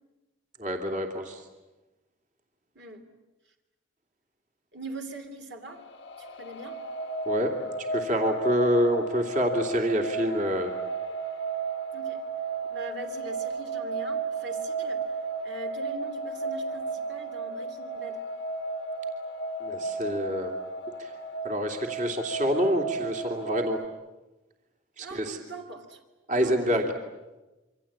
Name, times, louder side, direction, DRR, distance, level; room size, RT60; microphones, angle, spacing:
voice 1, 0.6-1.4 7.3-7.5 7.8-10.7 19.6-20.6 21.0-21.1 21.4-23.8 25.0-25.4 26.3-26.8, equal, 35° right, 3 dB, 2.8 m, -27 dB
voice 2, 2.7-3.1 4.7-5.9 6.2-6.8 11.9-12.2 12.7-15.0 15.4-18.2 25.0-26.0 26.3-26.7, right 1 dB, 55° right, 4 dB, 2.9 m, -42 dB
sound 1, 5.7-23.8, right 3 dB, 60° left, 1.3 m, -33 dB
27.0 x 25.0 x 8.7 m, 1.1 s
head